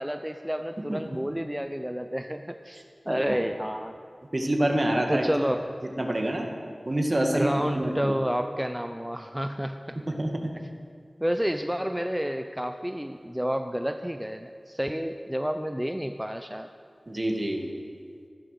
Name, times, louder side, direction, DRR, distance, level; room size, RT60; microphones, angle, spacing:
voice 1, 0.0-3.9 5.1-5.7 7.2-9.8 11.2-16.7, equal, 5° right, 7 dB, 0.6 m, -30 dB
voice 2, 0.9-1.2 3.1-3.4 4.3-5.2 6.0-6.5 6.9-8.1 10.1-10.3 17.1-17.7, right 1 dB, 40° right, 2 dB, 2.1 m, -27 dB
15.0 x 12.0 x 6.9 m, 2.2 s
wide cardioid pair, 55°, 0 cm